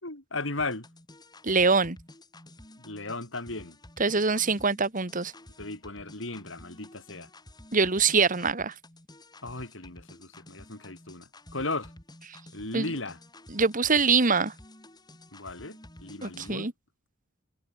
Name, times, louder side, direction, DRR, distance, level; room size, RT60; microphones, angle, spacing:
voice 1, 0.0-0.9 2.8-3.8 5.6-7.3 9.4-11.9 12.5-13.2 15.3-16.7, left 2 dB, 75° left, 5.7 m, -36 dB
sound 1, 0.6-16.6, left 1 dB, 20° left, 3.8 m, -51 dB
voice 2, 1.4-2.0 4.0-5.3 7.7-8.7 12.7-12.9 13.5-14.5 16.2-16.7, right 4 dB, 45° right, 1.8 m, -24 dB
head